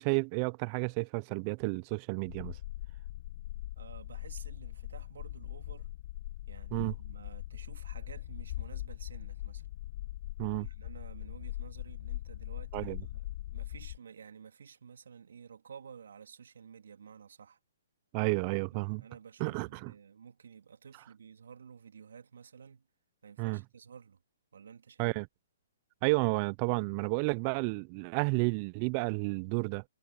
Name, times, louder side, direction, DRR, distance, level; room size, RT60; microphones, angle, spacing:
voice 1, 0.0-2.6 6.7-6.9 10.4-10.7 12.7-13.0 18.1-19.0 19.4-19.9 23.4-23.6 25.0-25.3 26.0-29.8, right 31 dB, 35° right, 0.6 m, -31 dB
sound 1, 2.3-14.0, left 15 dB, 45° left, 2.1 m, -41 dB
voice 2, 3.7-5.9 6.5-9.7 10.6-17.6 18.7-22.9 23.2-24.2 24.5-25.1, right 6 dB, 70° right, 3.1 m, -52 dB
hypercardioid pair, 135°, 0 cm